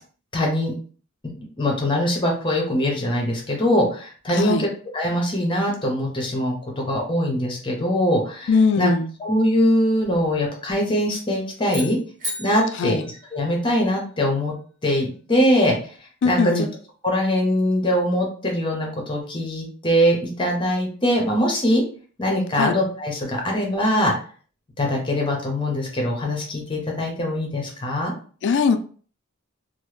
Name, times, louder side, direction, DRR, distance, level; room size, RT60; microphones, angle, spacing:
voice 1, 0.3-0.7 1.4-4.7 4.9-8.5 8.8-8.9 9.2-12.0 12.4-13.0 13.3-14.5 14.8-15.7 16.2-16.6 17.0-21.8 22.2-24.1 24.8-28.1, equal, 25° left, 0 dB, 0.8 m, -22 dB
voice 2, 4.3-4.7 8.5-9.1 12.7-13.1 16.2-16.7 22.6-22.8 28.4-28.8, left 5 dB, 55° left, 9 dB, 0.3 m, -21 dB
sound 1, 11.6-14.0, equal, 40° right, 1.0 m, -36 dB
3.0 x 2.1 x 3.2 m, 0.42 s
head